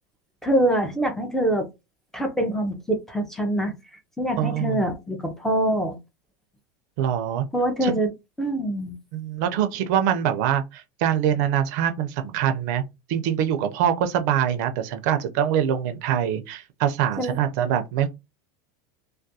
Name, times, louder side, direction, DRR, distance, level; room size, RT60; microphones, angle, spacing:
voice 1, 0.4-1.7 2.1-3.7 4.2-6.0 7.5-8.1 8.4-9.0 17.2-17.4, right 1 dB, 5° left, 0.4 m, -24 dB
voice 2, 4.4-4.8 7.0-7.5 7.8-8.0 9.1-12.8 13.1-18.1, right 9 dB, 60° right, 0.4 m, -24 dB
2.3 x 2.2 x 2.6 m
supercardioid pair, 150°, 11 cm